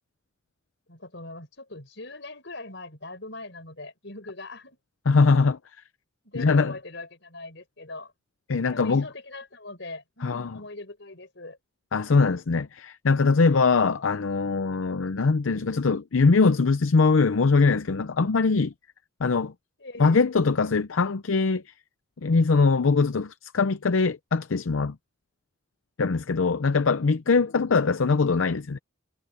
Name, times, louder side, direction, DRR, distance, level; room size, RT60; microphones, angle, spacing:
voice 1, 0.9-4.8 6.2-8.1 8.6-11.6 19.8-20.2 27.4-27.6, left 2 dB, 60° left, 6.3 m, -41 dB
voice 2, 5.1-5.6 6.3-6.7 8.5-9.1 10.2-10.6 11.9-18.7 19.2-19.5 20.0-21.7 22.2-25.0 26.0-28.8, left 4 dB, 80° left, 0.6 m, -22 dB
head